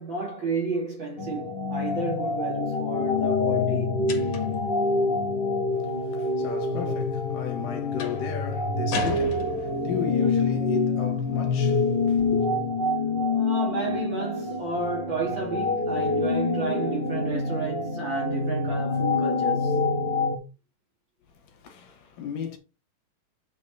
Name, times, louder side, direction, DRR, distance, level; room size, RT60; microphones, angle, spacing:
voice 1, 0.0-4.0 13.3-19.9, right 3 dB, 40° right, 2.9 m, -32 dB
sound 1, 1.2-20.4, left 3 dB, 35° left, 0.9 m, -26 dB
sound 2, 4.1-4.7 8.0-8.3 8.9-10.0, left 6 dB, 55° left, 2.5 m, -34 dB
voice 2, 5.8-12.4 21.5-22.6, left 7 dB, 80° left, 3.2 m, -35 dB
8.2 x 5.3 x 4.2 m
omnidirectional pair, 3.7 m